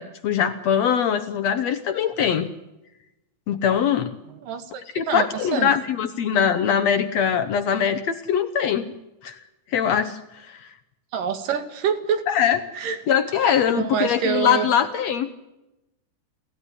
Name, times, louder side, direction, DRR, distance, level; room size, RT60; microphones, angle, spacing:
voice 1, 0.0-2.5 3.5-4.1 5.0-8.9 9.2-9.4 9.7-10.6 12.3-12.6 13.1-15.3, left 8 dB, 65° left, 10 dB, 1.8 m, -22 dB
voice 2, 4.3-5.7 11.1-12.2 12.7-13.0 13.7-14.7, right 7 dB, 80° right, 8 dB, 3.6 m, -26 dB
28.0 x 15.5 x 10.0 m, 0.97 s
omnidirectional pair, 3.9 m